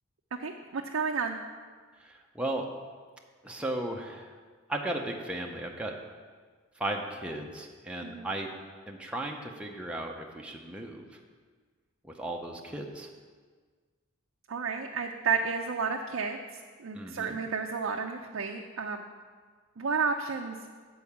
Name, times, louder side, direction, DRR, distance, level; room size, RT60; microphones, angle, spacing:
voice 1, 0.4-1.4 8.0-8.3 14.5-19.0 19.8-20.6, right 5 dB, 70° right, 2 dB, 0.5 m, -32 dB
voice 2, 2.0-2.7 3.4-4.3 4.7-5.9 6.8-8.5 8.9-11.2 12.0-13.1 16.9-17.3, right 1 dB, 5° right, 0 dB, 0.7 m, -36 dB
8.4 x 4.6 x 7.2 m, 1.5 s
head